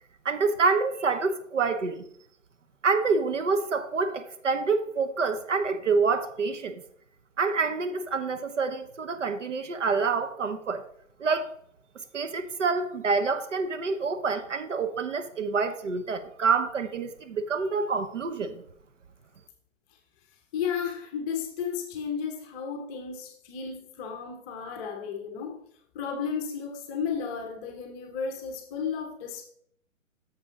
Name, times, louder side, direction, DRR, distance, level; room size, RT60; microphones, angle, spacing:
voice 1, 0.2-2.0 2.8-6.8 7.4-10.8 11.2-11.5 11.9-18.6, right 4 dB, 65° right, 1.0 m, -27 dB
voice 2, 20.5-25.6 25.9-29.4, left 6 dB, 15° left, 0.7 m, -33 dB
9.6 x 6.8 x 3.6 m
figure-of-eight pair, 130°, 40 cm